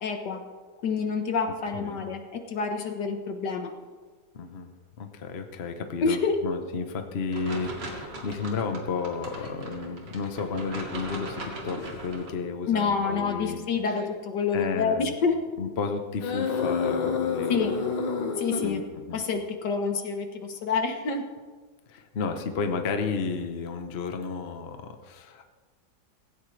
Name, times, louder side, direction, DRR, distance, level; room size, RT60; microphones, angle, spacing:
voice 1, 0.0-0.4 0.8-3.7 6.0-6.4 12.7-15.4 17.5-17.8 18.4-18.8 19.1-21.2, left 5 dB, 70° left, 5 dB, 1.8 m, -28 dB
voice 2, 4.3-4.7 5.0-13.6 14.5-15.1 15.6-17.7 18.6-18.8 19.1-19.2 21.9-25.5, left 5 dB, 40° left, 6 dB, 1.1 m, -32 dB
sound 1, 7.3-12.3, right 1 dB, 75° right, 2.8 m, -39 dB
sound 2, 9.3-9.5 10.3-10.4 11.8-12.0 13.0-13.3 14.0-14.1 16.2-18.8, left 5 dB, 85° left, 2.0 m, -29 dB
16.5 x 16.5 x 3.3 m, 1.4 s
omnidirectional pair, 1.9 m